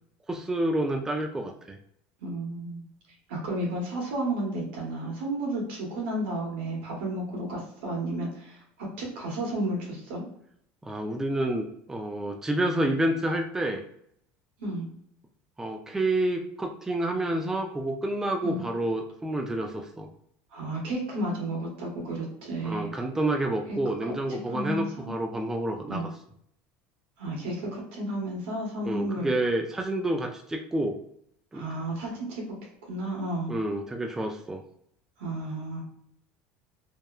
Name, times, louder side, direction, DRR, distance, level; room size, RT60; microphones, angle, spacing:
voice 1, 0.3-1.8 10.8-13.8 15.6-20.1 22.6-26.1 28.8-31.0 31.5-31.7 33.5-34.6, right 1 dB, 10° right, 3 dB, 0.3 m, -29 dB
voice 2, 2.2-2.8 3.3-10.2 14.6-14.9 18.4-18.6 20.5-22.9 24.0-25.1 25.9-26.1 27.2-29.3 31.5-33.6 35.2-35.8, right 1 dB, 85° right, -2 dB, 1.2 m, -32 dB
3.0 x 2.1 x 2.3 m, 0.69 s
supercardioid pair, 120°, 6 cm